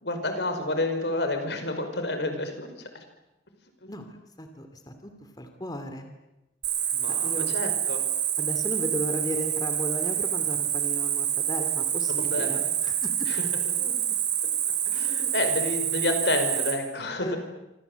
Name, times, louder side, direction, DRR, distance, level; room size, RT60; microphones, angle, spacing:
voice 1, 0.0-2.9 3.8-3.9 6.9-8.0 12.1-12.6 13.3-13.5 13.8-14.0 14.9-17.4, left 2 dB, 75° left, 7 dB, 5.4 m, -30 dB
voice 2, 3.9-5.1 5.4-6.1 7.1-7.5 8.4-13.3 17.2-17.4, equal, 20° left, 7 dB, 2.6 m, -35 dB
Cricket, 6.6-16.7, right 10 dB, 75° right, 6.7 m, -27 dB
27.0 x 26.0 x 8.2 m, 0.97 s
head